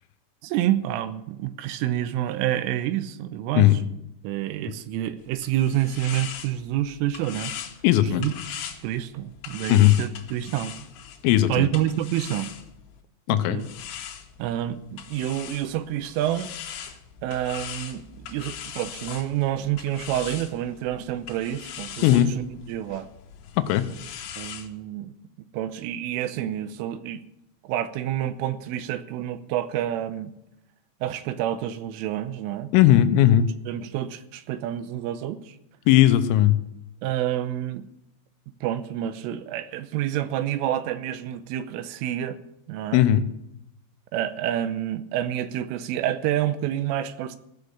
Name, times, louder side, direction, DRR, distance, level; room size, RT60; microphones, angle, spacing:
voice 1, 0.4-3.7 4.2-7.5 8.0-8.3 8.8-10.7 11.5-12.5 13.3-13.6 14.4-16.9 17.2-23.1 24.4-25.1 25.5-27.2 27.6-30.3 31.0-32.7 33.7-35.6 37.0-37.9 38.6-42.4 42.7-43.0 44.1-47.4, right 12 dB, 80° right, 12 dB, 3.3 m, -28 dB
sound 1, 5.2-13.0 13.6-24.7, left 9 dB, 75° left, 3.6 m, -40 dB
voice 2, 7.8-8.3 9.7-10.0 11.2-11.7 13.3-13.6 22.0-22.3 23.6-23.9 32.7-33.5 35.9-36.6 42.9-43.2, left 13 dB, 90° left, 10 dB, 3.5 m, -17 dB
16.0 x 6.7 x 9.4 m, 0.84 s
omnidirectional pair, 5.8 m